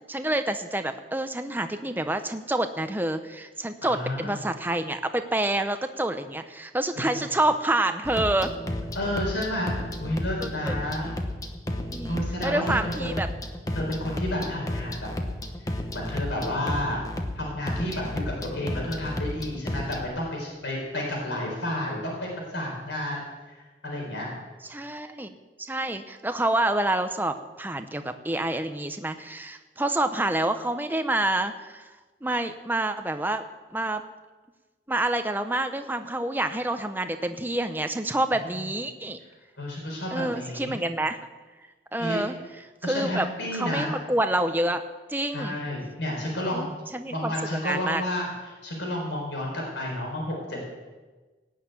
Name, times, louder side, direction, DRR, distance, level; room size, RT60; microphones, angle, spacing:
voice 1, 0.1-8.5 10.4-10.7 11.9-13.3 18.8-18.9 24.7-31.8 32.2-33.4 33.7-34.0 34.9-39.2 40.1-41.2 41.9-42.3 42.8-43.3 43.5-44.8 45.1-45.6 46.5-46.7 46.9-48.0, right 1 dB, 10° right, 8 dB, 0.8 m, -28 dB
voice 2, 3.8-4.4 6.9-7.3 8.9-9.7 10.0-11.1 12.1-13.2 13.7-15.1 15.6-17.0 17.3-23.3 23.5-24.3 38.3-38.4 39.6-40.7 42.0-42.2 42.8-44.0 45.3-46.7 47.1-50.6, left 1 dB, 85° left, -1 dB, 4.5 m, -31 dB
sound 1, 8.0-20.1, left 1 dB, 20° left, 1.1 m, -32 dB
18.0 x 6.6 x 9.1 m, 1.3 s
head